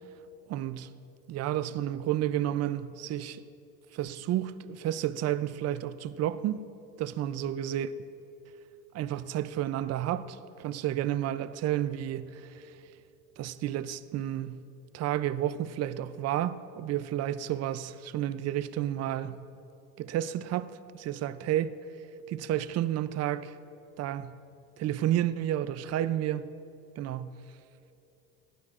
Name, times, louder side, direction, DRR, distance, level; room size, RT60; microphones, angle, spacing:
voice 1, 0.5-0.9 1.3-3.4 3.9-6.6 7.0-7.9 8.9-12.7 13.4-14.6 14.9-19.4 20.0-21.8 22.3-23.5 24.0-24.3 24.8-26.5 27.0-27.4, right 12 dB, 40° right, 0.5 m, -31 dB
19.0 x 12.0 x 2.5 m
supercardioid pair, 110°, 39 cm